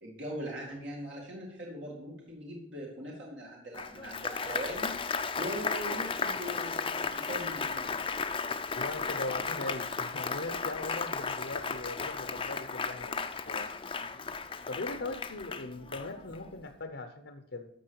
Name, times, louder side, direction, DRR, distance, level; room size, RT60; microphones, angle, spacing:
voice 1, 0.0-4.9 5.4-8.0, equal, 70° right, -3 dB, 2.3 m, -40 dB
Applause, 3.7-16.5, left 5 dB, 25° left, 0.6 m, -35 dB
voice 2, 8.7-13.7 14.7-17.7, left 2 dB, 65° left, 6 dB, 0.8 m, -39 dB
12.5 x 6.8 x 4.7 m, 0.88 s
head